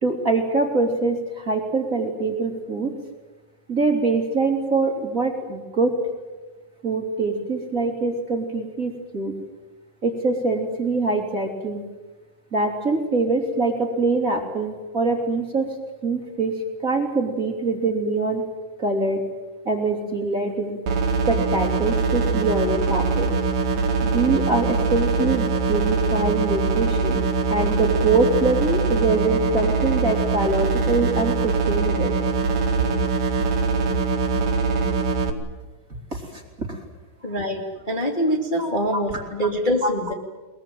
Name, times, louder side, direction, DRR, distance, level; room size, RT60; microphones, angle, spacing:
voice 1, 0.0-3.0 3.7-5.9 6.8-9.4 10.0-11.8 12.5-15.7 16.0-18.4 18.8-19.2 19.6-20.8 21.3-23.3 24.0-27.2 27.5-32.1 36.1-36.8 38.6-39.2 39.8-39.9, right 3 dB, 25° right, 2 dB, 2.8 m, -24 dB
sound 1, 20.9-35.3, right 4 dB, 90° right, 3.8 m, -22 dB
voice 2, 37.2-40.1, equal, 15° left, 0 dB, 2.1 m, -24 dB
22.5 x 21.5 x 9.1 m, 1.2 s
omnidirectional pair, 3.9 m